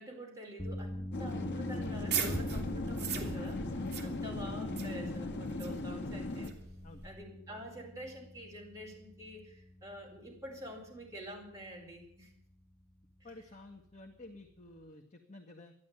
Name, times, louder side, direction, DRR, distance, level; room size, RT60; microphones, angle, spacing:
voice 1, 0.0-6.5 7.0-12.3, equal, 15° right, -2 dB, 4.9 m, -47 dB
sound 1, 0.6-14.9, left 1 dB, ahead, 0.6 m, -47 dB
sound 2, 1.1-6.5, left 2 dB, 55° left, 1.4 m, -38 dB
sound 3, 1.8-7.1, right 5 dB, 50° right, 2.7 m, -40 dB
voice 2, 13.2-15.7, left 2 dB, 35° left, 1 dB, 1.6 m, -52 dB
13.5 x 11.5 x 9.1 m, 0.70 s
head